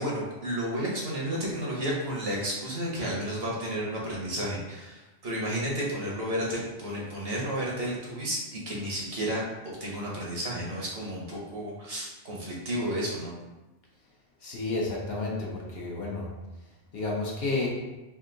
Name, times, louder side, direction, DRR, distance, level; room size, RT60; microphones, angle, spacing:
voice 1, 0.0-9.4 9.8-13.3, equal, 55° right, -4 dB, 1.1 m, -32 dB
voice 2, 14.4-16.3 16.9-17.7, left 3 dB, 60° left, -3 dB, 0.9 m, -31 dB
3.5 x 2.6 x 3.8 m, 1.1 s
omnidirectional pair, 1.3 m